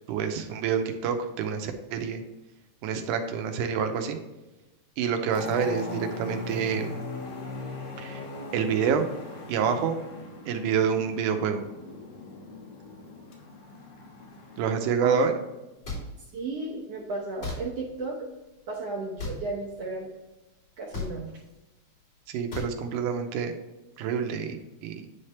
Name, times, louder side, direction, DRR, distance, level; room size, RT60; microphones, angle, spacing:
voice 1, 0.1-2.2 2.8-4.2 5.0-7.0 8.0-8.3 8.5-9.1 9.5-10.0 10.5-11.6 14.6-15.4 22.3-23.5 24.0-25.1, right 6 dB, 90° right, 6 dB, 2.3 m, -27 dB
sound 1, 5.3-14.7, left 2 dB, 70° left, 2.6 m, -39 dB
sound 2, 15.8-16.0 17.4-17.6 19.2-19.4 20.9-21.1 22.5-22.7, left 3 dB, 35° left, 3.2 m, -33 dB
voice 2, 16.2-18.2 18.7-20.1 20.8-21.3, right 3 dB, 65° right, -3 dB, 1.8 m, -34 dB
9.8 x 3.4 x 4.2 m, 1.1 s
omnidirectional pair, 3.5 m